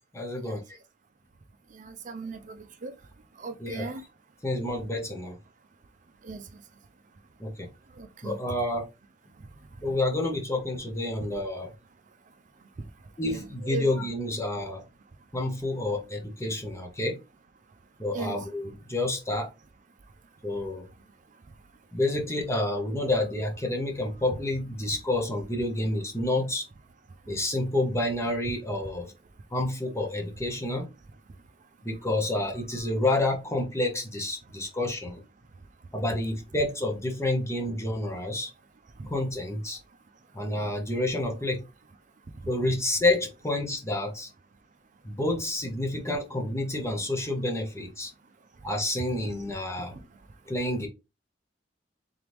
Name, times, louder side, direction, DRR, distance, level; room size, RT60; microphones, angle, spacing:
voice 1, 0.1-0.6 3.6-3.9 4.4-5.4 7.4-7.7 8.2-8.9 9.8-11.7 13.2-14.8 15.3-17.2 18.0-19.5 20.4-20.9 21.9-26.7 27.3-29.1 29.5-30.9 31.8-35.2 35.9-38.5 39.1-39.8 40.3-41.6 42.5-44.3 45.0-48.1 48.6-50.0 50.5-50.9, left 1 dB, 15° left, 0.9 m, -29 dB
voice 2, 1.7-2.9 3.4-4.0 6.2-6.4 8.0-8.4 13.2-14.1 18.1-18.4 39.0-39.1, right 3 dB, 45° right, 0.5 m, -37 dB
3.8 x 3.5 x 3.0 m
head